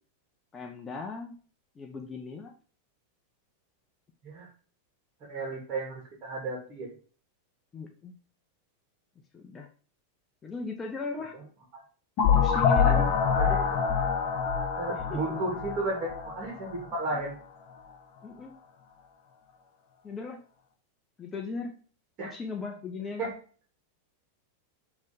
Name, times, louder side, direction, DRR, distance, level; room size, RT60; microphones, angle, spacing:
voice 1, 0.5-1.4 1.7-2.5 7.7-8.1 9.3-9.7 10.4-11.4 12.3-13.1 15.1-15.2 18.2-18.5 20.0-20.4 21.2-21.7 22.2-23.2, left 4 dB, 20° left, 3 dB, 1.1 m, -37 dB
voice 2, 5.2-6.9 11.3-11.4 11.7-11.8 12.9-13.8 14.8-17.3 22.2-22.4 23.2-23.3, right 2 dB, 30° right, 0 dB, 2.9 m, -34 dB
sound 1, 12.2-16.9, left 6 dB, 40° left, 1.5 m, -26 dB
8.0 x 3.6 x 5.3 m, 0.41 s
figure-of-eight pair, 90°, 0 cm